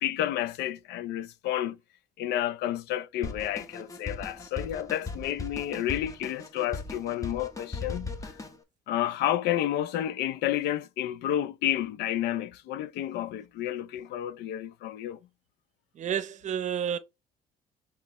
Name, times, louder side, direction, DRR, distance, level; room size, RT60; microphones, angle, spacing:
voice 1, 0.0-1.8 2.2-8.3 8.9-15.2, left 12 dB, 80° left, 0.5 m, -30 dB
Drum kit, 3.2-8.6, left 3 dB, 20° left, 0.9 m, -38 dB
voice 2, 16.0-17.0, right 8 dB, 45° right, 0.7 m, -30 dB
5.3 x 3.3 x 3.0 m
cardioid pair, 110°, 17 cm